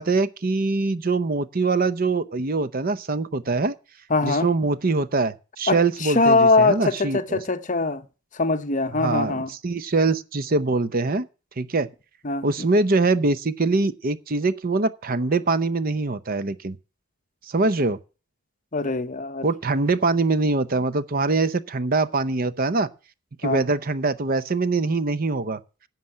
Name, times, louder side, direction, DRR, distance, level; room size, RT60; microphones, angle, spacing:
voice 1, 0.0-3.7 4.2-7.4 8.9-11.3 11.6-11.9 12.4-16.8 17.5-18.0 19.4-22.9 23.4-25.6, right 3 dB, 45° right, 0.7 m, -23 dB
voice 2, 4.1-4.5 5.7-8.1 8.3-9.5 12.2-12.5 18.7-19.5 23.4-23.6, left 3 dB, 35° left, 0.8 m, -22 dB
11.5 x 7.5 x 7.7 m
head